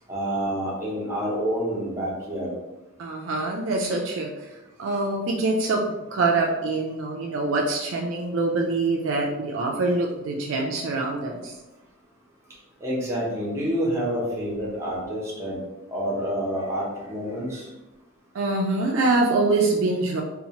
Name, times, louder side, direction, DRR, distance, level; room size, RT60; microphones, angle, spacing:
voice 1, 0.1-2.5 12.8-15.6 15.9-17.7, equal, 15° right, -5 dB, 0.7 m, -28 dB
voice 2, 3.0-4.5 4.8-5.8 6.1-11.6 18.3-20.2, right 3 dB, 60° right, 0 dB, 0.3 m, -24 dB
2.7 x 2.0 x 2.8 m, 1.0 s
head